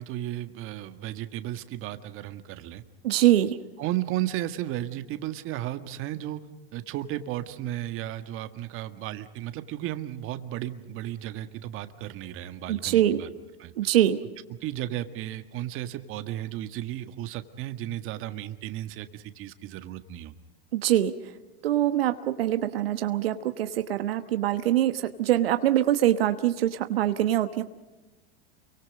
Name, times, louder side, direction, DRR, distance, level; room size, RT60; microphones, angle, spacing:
voice 1, 0.0-2.8 3.4-3.5 3.8-6.4 6.7-13.3 13.6-13.9 14.6-20.3, right 13 dB, 45° right, 10 dB, 1.8 m, -34 dB
voice 2, 3.0-3.6 12.7-13.2 13.8-14.2 20.7-21.1 21.6-27.6, right 12 dB, 80° right, 9 dB, 1.3 m, -24 dB
29.5 x 24.0 x 5.3 m, 1.1 s
hypercardioid pair, 105°, 29 cm